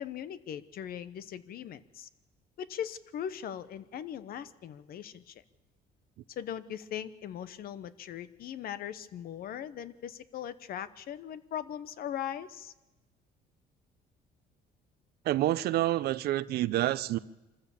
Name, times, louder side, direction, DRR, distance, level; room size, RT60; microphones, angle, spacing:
voice 1, 0.0-2.1 2.6-5.4 6.3-12.7, left 9 dB, 60° left, 1.0 m, -39 dB
voice 2, 15.3-17.2, right 14 dB, 70° right, 0.6 m, -28 dB
25.0 x 14.5 x 7.1 m
cardioid pair, 110°, 17 cm